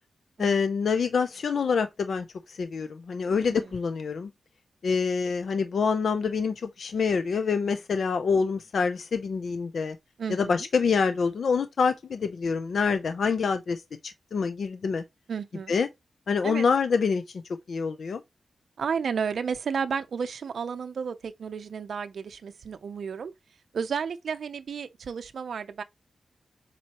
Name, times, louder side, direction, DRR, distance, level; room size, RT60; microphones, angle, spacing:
voice 1, 0.4-4.3 4.8-10.0 10.3-15.0 15.7-15.9 16.3-17.2 17.7-18.2, left 5 dB, 65° left, 0.6 m, -26 dB
voice 2, 10.2-10.6 15.3-15.7 16.4-16.6 18.8-23.3 23.7-25.8, right 6 dB, 70° right, 0.6 m, -32 dB
7.5 x 4.2 x 3.0 m
wide cardioid pair, 120°, 0 cm